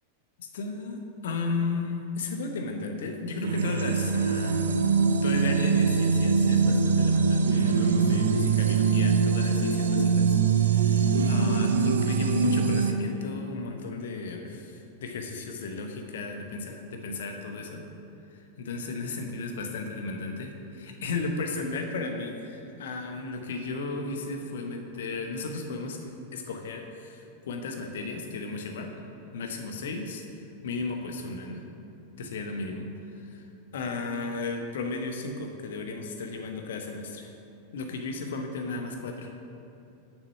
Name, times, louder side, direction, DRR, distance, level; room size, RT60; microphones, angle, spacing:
voice 1, 0.4-4.9 5.2-17.9 18.3-29.0 29.3-30.2 30.6-31.6 32.2-32.9 33.2-33.5 33.7-37.3 37.7-39.5, left 3 dB, 60° left, 4 dB, 0.9 m, -35 dB
sound 1, 3.4-12.9, right 5 dB, 65° right, 0.5 m, -23 dB
6.8 x 6.1 x 5.6 m, 2.7 s
figure-of-eight pair, 90°, 0 cm